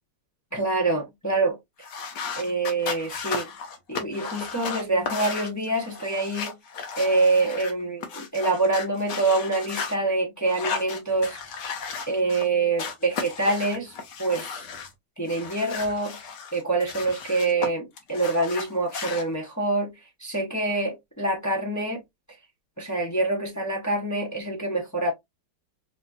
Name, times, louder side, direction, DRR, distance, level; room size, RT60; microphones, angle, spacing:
voice 1, 0.5-1.6 2.4-3.5 3.9-6.5 7.0-11.4 12.1-13.9 14.2-14.6 15.2-16.2 16.5-19.9 20.2-22.0 22.8-25.1, right 2 dB, 25° left, 0.3 m, -25 dB
sound 1, 1.8-9.9 10.5-12.5 12.8-14.9 15.3-17.7 18.0-19.2, left 5 dB, 65° left, 1.3 m, -35 dB
4.1 x 2.8 x 2.3 m
omnidirectional pair, 2.2 m